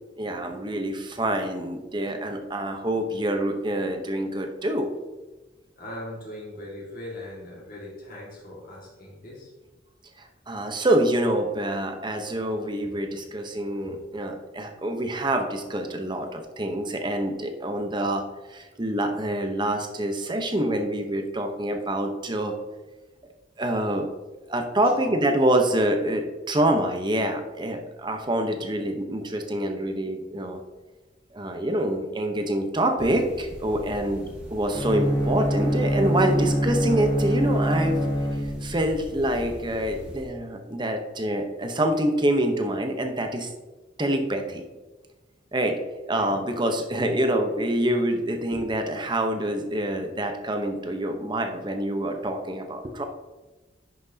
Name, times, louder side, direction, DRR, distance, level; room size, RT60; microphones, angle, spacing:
voice 1, 0.2-4.9 10.5-18.2 18.5-22.6 23.6-24.1 24.5-30.6 31.3-34.2 34.5-38.0 38.6-43.5 44.0-44.6 45.5-45.8 46.0-53.1, right 1 dB, 25° right, 5 dB, 1.0 m, -26 dB
voice 2, 5.8-9.5 24.9-25.2 34.2-34.3 38.0-38.1 46.1-46.4, left 1 dB, 50° left, -4 dB, 2.1 m, -40 dB
sound 1, 33.0-40.2, equal, 5° right, 1.5 m, -41 dB
Bowed string instrument, 34.7-38.9, equal, 15° left, 2.0 m, -25 dB
10.5 x 6.1 x 2.9 m, 1.2 s
head